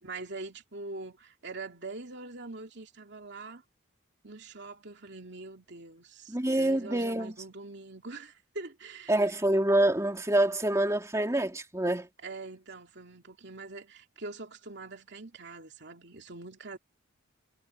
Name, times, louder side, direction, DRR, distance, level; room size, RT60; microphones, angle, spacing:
voice 1, 0.0-3.6 4.2-9.4 12.2-16.8, right 3 dB, 60° right, 2.9 m, -43 dB
voice 2, 6.3-7.3 9.1-12.1, right 1 dB, 15° right, 2.7 m, -26 dB
head